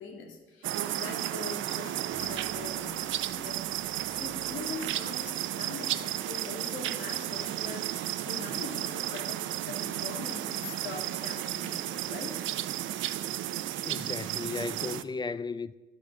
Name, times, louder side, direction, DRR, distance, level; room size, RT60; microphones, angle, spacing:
voice 1, 0.0-3.6 4.1-12.4, left 5 dB, 75° left, 2.0 m, -42 dB
sound 1, 0.6-15.0, right 13 dB, 75° right, 0.5 m, -33 dB
sound 2, 1.8-8.4, right 2 dB, 55° left, 3.1 m, -59 dB
voice 2, 13.8-15.7, left 4 dB, 20° left, 0.4 m, -35 dB
11.5 x 5.0 x 7.4 m
cardioid pair, 90°, 20 cm